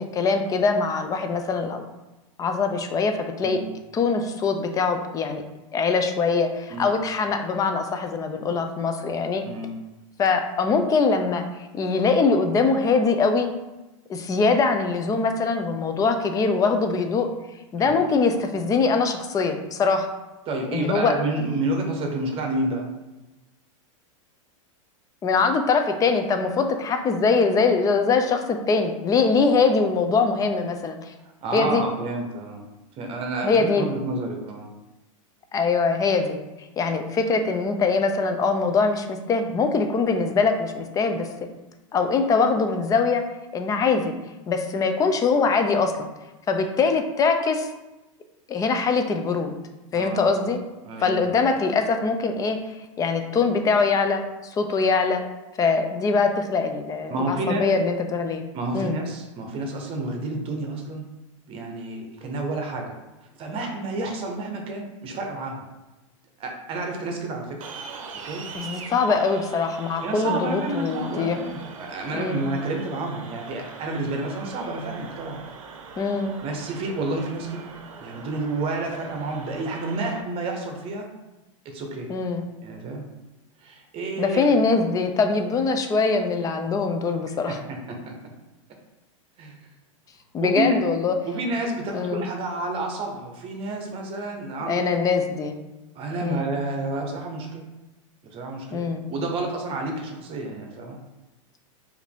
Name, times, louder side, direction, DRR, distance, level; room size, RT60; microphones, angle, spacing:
voice 1, 0.0-1.8 2.4-3.6 3.9-5.4 5.7-9.4 10.2-11.4 11.7-13.5 14.1-17.3 17.7-20.1 20.7-21.1 25.2-31.0 31.5-31.8 33.4-33.9 35.5-36.4 36.8-41.3 41.9-43.2 43.5-44.1 44.5-46.1 46.5-47.7 48.5-49.5 49.9-50.6 51.0-52.6 53.0-54.2 54.5-55.2 55.6-58.4 58.7-59.0 68.5-71.4 72.1-72.4 76.0-76.3 82.1-82.4 84.2-87.6 90.3-91.1 91.9-92.2 94.7-95.5 96.2-96.4 98.7-99.0, left 4 dB, 20° left, 6 dB, 0.4 m, -22 dB
voice 2, 9.4-9.8 17.8-18.0 20.5-22.9 31.2-32.7 33.0-34.7 49.9-50.3 50.8-51.4 57.1-57.7 58.5-61.0 61.5-63.0 63.4-65.7 66.4-67.7 68.2-68.4 68.7-68.9 70.0-75.9 76.4-77.6 78.0-81.1 81.6-82.1 82.6-83.0 83.6-84.5 87.5-88.2 89.4-89.5 90.4-90.8 91.2-94.9 95.9-97.6 98.3-98.8 99.1-101.0, right 2 dB, 35° right, 3 dB, 0.9 m, -30 dB
sound 1, 67.6-80.2, right 5 dB, 75° right, 0.7 m, -41 dB
4.7 x 2.7 x 3.5 m, 1.0 s
hypercardioid pair, 120°, 17 cm